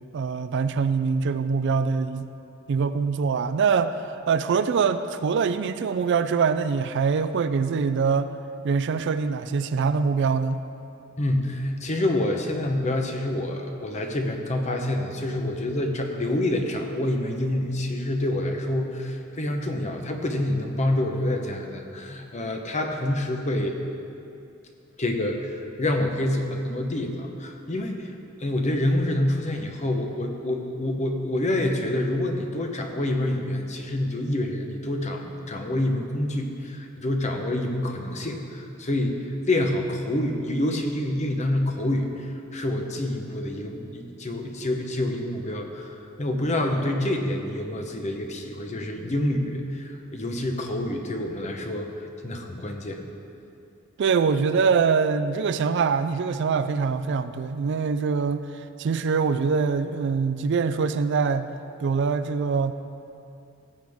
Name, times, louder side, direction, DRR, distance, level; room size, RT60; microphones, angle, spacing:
voice 1, 0.1-2.3 2.7-8.3 8.6-10.7 54.0-61.5 61.8-62.7, right 5 dB, 60° right, 11 dB, 0.4 m, -24 dB
voice 2, 11.2-23.8 25.0-25.5 25.8-28.1 28.4-53.0, left 1 dB, 35° left, 4 dB, 0.9 m, -27 dB
15.0 x 7.8 x 3.6 m, 2.6 s
head